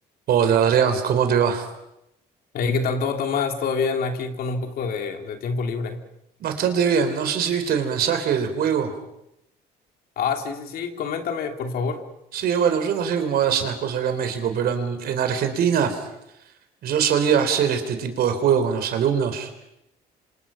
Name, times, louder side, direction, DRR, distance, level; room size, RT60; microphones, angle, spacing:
voice 1, 0.3-1.7 6.4-8.9 12.3-16.0 16.8-19.5, right 7 dB, 65° right, 7 dB, 4.0 m, -22 dB
voice 2, 2.5-6.0 10.2-12.0, left 5 dB, 65° left, 5 dB, 3.1 m, -26 dB
27.5 x 26.5 x 5.8 m, 0.84 s
cardioid pair, 110°, 17 cm